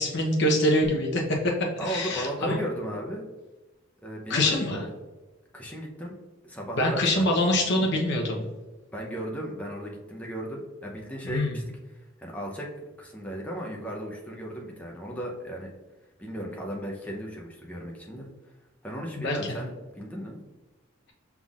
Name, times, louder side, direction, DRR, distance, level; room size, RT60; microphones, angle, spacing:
voice 1, 0.0-1.5 1.8-2.6 4.3-4.8 6.8-8.4 11.2-11.6 19.2-19.4, left 1 dB, 60° left, 0 dB, 0.8 m, -24 dB
voice 2, 1.8-3.3 4.0-4.9 5.5-6.1 6.4-7.3 7.6-7.7 8.9-11.6 12.2-12.7 13.0-15.7 16.2-18.3 18.8-20.4, right 1 dB, 5° left, -2 dB, 0.7 m, -35 dB
5.6 x 3.6 x 2.4 m, 1.2 s
head